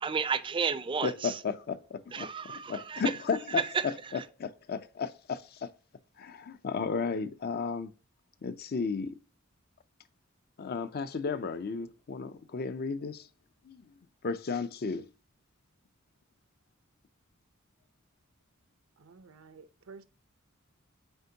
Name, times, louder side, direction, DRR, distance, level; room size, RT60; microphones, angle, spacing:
voice 1, 0.0-1.4 2.1-3.0 3.6-4.2, right 5 dB, 25° right, 0.4 m, -32 dB
voice 2, 1.0-5.7 6.2-7.9 8.4-9.1 10.6-13.3 13.6-13.9 14.2-15.1, left 5 dB, 50° left, 0.5 m, -34 dB
voice 3, 19.0-20.0, right 4 dB, 85° right, 0.7 m, -51 dB
7.9 x 4.5 x 2.8 m
head